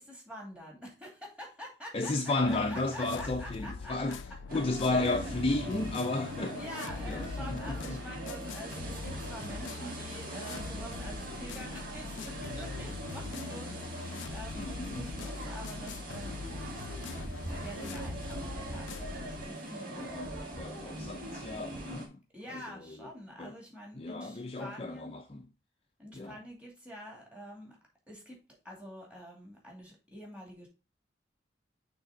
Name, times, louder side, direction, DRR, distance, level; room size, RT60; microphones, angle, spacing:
voice 1, 0.0-4.2 4.8-5.3 6.5-16.4 17.5-20.2 22.3-25.2 26.0-27.8 28.1-28.4 28.6-30.7, equal, 5° right, 2.3 m, -47 dB
voice 2, 1.9-4.2 4.5-6.6 7.1-8.0 14.6-15.1 19.4-19.6 20.0-22.2 22.5-22.6 23.4-23.5 23.9-25.4 26.1-26.4, left 2 dB, 30° left, 0.5 m, -33 dB
sound 1, 2.5-19.5, left 4 dB, 80° left, 0.4 m, -42 dB
sound 2, 4.5-22.1, right 1 dB, 50° right, 1.8 m, -41 dB
6.3 x 3.5 x 5.2 m
head